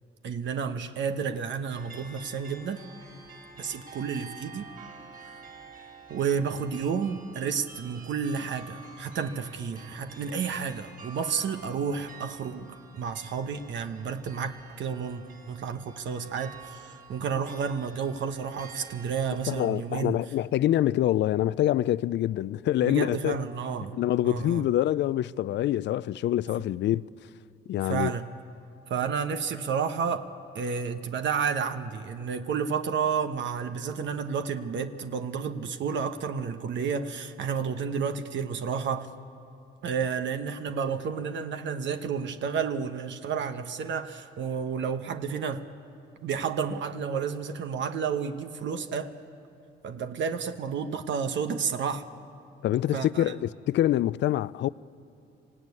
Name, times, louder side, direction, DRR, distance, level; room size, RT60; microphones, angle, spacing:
voice 1, 0.2-2.8 3.6-4.7 6.1-20.2 22.8-24.0 24.2-24.6 27.8-28.3 28.9-30.3 30.5-39.1 39.8-45.6 46.2-49.1 49.8-52.1 52.9-53.2, right 6 dB, 70° right, 1.1 m, -31 dB
sound 1, 1.7-19.7, right 4 dB, 45° right, 4.3 m, -49 dB
voice 2, 19.5-23.4 23.9-27.1 27.7-28.1 52.6-54.7, left 13 dB, 65° left, 0.4 m, -25 dB
25.0 x 16.0 x 9.6 m
cardioid pair, 90°, 20 cm